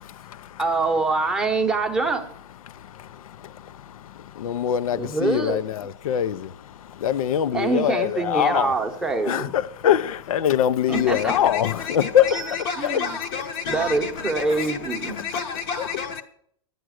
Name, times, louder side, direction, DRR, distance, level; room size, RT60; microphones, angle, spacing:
voice 1, 0.0-0.6 2.7-6.5 6.8-8.7 9.3-12.3 12.8-12.9 15.8-15.9, left 10 dB, 90° left, 0.6 m, -24 dB
voice 2, 0.6-2.3 4.9-5.6 7.5-9.6 10.9-11.3 12.3-13.2 13.7-15.2, right 3 dB, 5° right, 0.8 m, -25 dB
voice 3, 10.9-16.2, left 6 dB, 35° left, 0.8 m, -31 dB
11.5 x 9.3 x 6.3 m
supercardioid pair, 170°, 17 cm